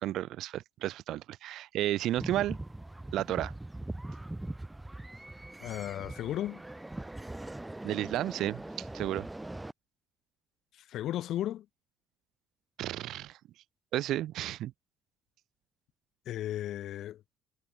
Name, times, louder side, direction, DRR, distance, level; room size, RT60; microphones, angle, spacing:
voice 1, 0.0-2.6 3.1-3.5 7.8-9.3 12.8-13.4 13.9-14.7, right 14 dB, 65° right, 3.1 m, -32 dB
sound 1, 2.2-9.7, right 1 dB, 10° right, 2.7 m, -41 dB
voice 2, 5.6-6.6 10.7-11.7 16.3-17.2, left 12 dB, 60° left, 4.0 m, -35 dB
cardioid pair, 145°, 0 cm